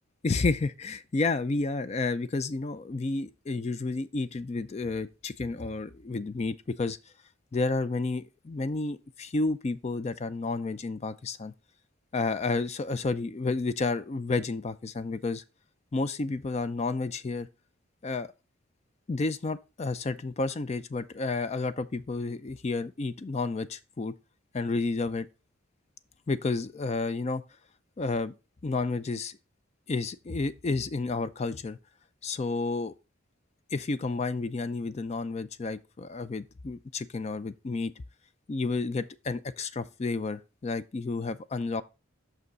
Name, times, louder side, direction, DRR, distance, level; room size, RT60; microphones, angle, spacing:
voice 1, 0.2-7.0 7.5-11.5 12.1-15.4 15.9-17.5 18.0-18.3 19.1-24.1 24.5-25.3 26.3-27.4 28.0-28.3 28.6-29.4 29.9-31.8 32.2-32.9 33.7-37.9 38.5-41.8, left 3 dB, 35° left, 0.4 m, -31 dB
6.2 x 5.4 x 3.9 m
head